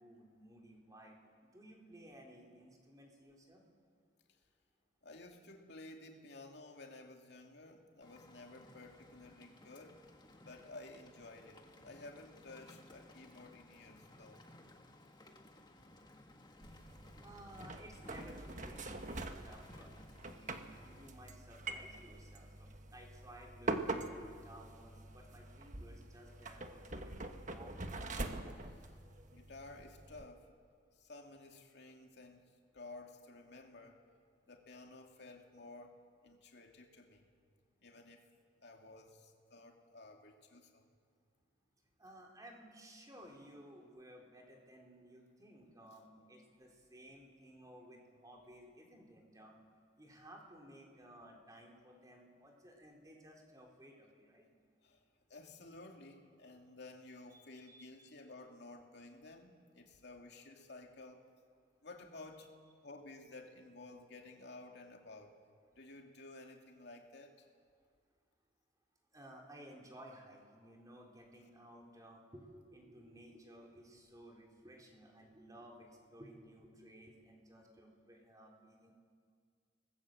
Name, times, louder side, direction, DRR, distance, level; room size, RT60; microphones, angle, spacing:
voice 1, 0.0-3.6 17.2-27.9 42.0-49.6 50.0-54.5 57.3-57.8 69.1-78.9, right 1 dB, 20° right, 0 dB, 3.9 m, -57 dB
voice 2, 5.0-10.1 10.4-14.5 28.7-29.0 29.3-30.5 30.9-34.0 34.5-37.3 37.8-38.2 38.6-40.9 54.8-55.0 55.3-61.2 61.8-62.5 62.8-65.4 65.7-67.5, left 2 dB, 65° left, 2 dB, 2.7 m, -54 dB
Rain, 8.0-21.1, left 1 dB, 25° left, 1.7 m, -59 dB
sound 1, 16.6-30.2, right 2 dB, 45° right, 1.5 m, -45 dB
27.0 x 20.0 x 7.9 m, 2.1 s
head